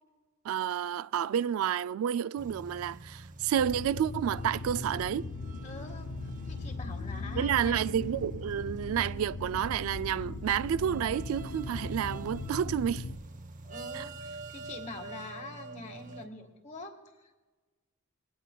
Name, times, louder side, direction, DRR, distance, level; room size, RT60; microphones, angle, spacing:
voice 1, 0.4-5.3 7.3-13.0 13.9-14.1, right 9 dB, 85° right, 0.3 m, -30 dB
sound 1, 2.4-16.3, right 3 dB, 40° right, 0.7 m, -46 dB
sound 2, 3.6-13.2, left 3 dB, 90° left, 0.6 m, -39 dB
voice 2, 5.6-8.0 13.6-17.4, left 2 dB, 35° left, 1.5 m, -45 dB
20.0 x 18.0 x 2.2 m
head